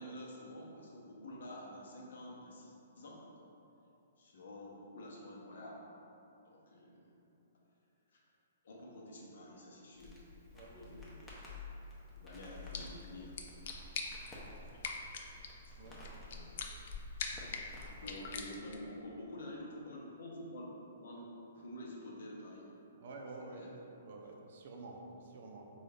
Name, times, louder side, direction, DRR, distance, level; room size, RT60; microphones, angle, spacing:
voice 1, 0.0-3.2 4.2-5.8 6.5-7.1 8.1-8.2 8.6-10.1 10.6-11.2 12.2-13.4 15.6-16.5 17.4-17.6 17.8-22.7 23.5-23.7, left 1 dB, 75° left, -3 dB, 0.8 m, -49 dB
Crackle, 10.0-18.6, left 2 dB, 10° left, 0.6 m, -50 dB
sound 1, 12.4-18.9, left 5 dB, 55° left, 0.4 m, -45 dB
voice 2, 17.3-18.3 23.0-23.7 24.0-25.7, right 3 dB, 60° right, 1 dB, 0.5 m, -50 dB
3.9 x 2.4 x 3.3 m, 2.8 s
hypercardioid pair, 145°, 0 cm